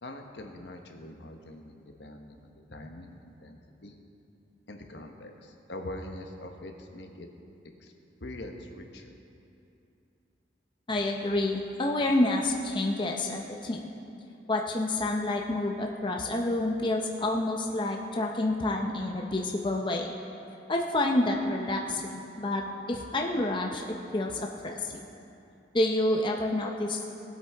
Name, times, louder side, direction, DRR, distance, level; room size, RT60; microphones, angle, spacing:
voice 1, 0.0-3.9 4.7-7.3 7.8-7.9 8.2-9.1, left 1 dB, 65° left, 4 dB, 1.0 m, -43 dB
voice 2, 10.9-13.9 14.5-20.1 20.7-23.8 24.1-24.9 25.7-27.2, left 1 dB, 25° left, 1 dB, 0.6 m, -28 dB
19.0 x 8.4 x 3.4 m, 2.8 s
head